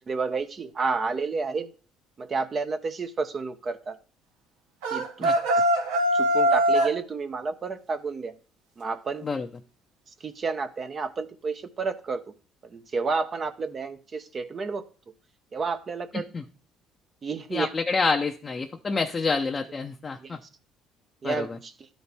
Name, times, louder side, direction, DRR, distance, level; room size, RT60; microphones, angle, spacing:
voice 1, 0.1-1.7 2.2-4.0 4.9-5.6 6.1-8.3 8.8-9.3 10.2-12.2 12.6-14.9 15.5-16.2 17.2-17.7 20.2-20.4 21.2-21.9, right 4 dB, 40° right, 8 dB, 0.8 m, -30 dB
sound 1, 4.8-7.0, equal, 90° right, 1.0 m, -22 dB
voice 2, 16.1-16.4 17.5-20.4 21.2-21.6, left 4 dB, 30° left, 3 dB, 0.6 m, -28 dB
12.0 x 4.2 x 3.5 m, 0.37 s
supercardioid pair, 75°, 0 cm